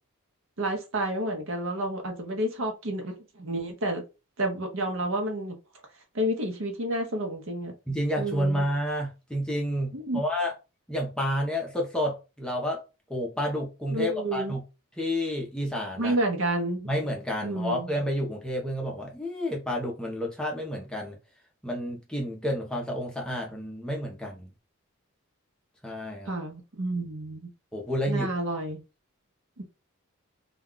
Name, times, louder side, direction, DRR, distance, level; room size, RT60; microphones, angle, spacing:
voice 1, 0.6-4.0 4.4-5.6 6.1-7.7 8.2-8.7 9.9-10.2 13.9-14.6 16.0-16.9 17.4-17.9 26.3-27.5 28.1-28.8 29.6-29.7, right 1 dB, 65° right, 0.8 m, -30 dB
voice 2, 7.9-10.5 10.9-12.8 13.1-14.6 15.0-16.2 16.9-21.2 21.6-24.5 25.8-26.3 27.7-28.3, equal, 5° left, 0.6 m, -30 dB
2.3 x 2.2 x 3.6 m
head